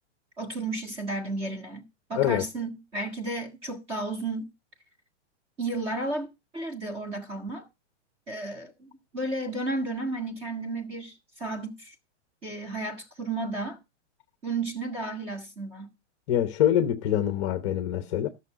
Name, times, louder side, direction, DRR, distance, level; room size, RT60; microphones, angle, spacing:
voice 1, 0.4-1.8 2.1-4.4 5.6-6.3 6.5-7.7 8.3-11.1 11.4-11.9 12.4-13.8 14.4-15.9, right 2 dB, 15° right, 1.7 m, -33 dB
voice 2, 2.1-2.4 16.3-18.3, left 11 dB, 25° left, 0.9 m, -25 dB
14.0 x 6.4 x 5.0 m
supercardioid pair, 180°, 35 cm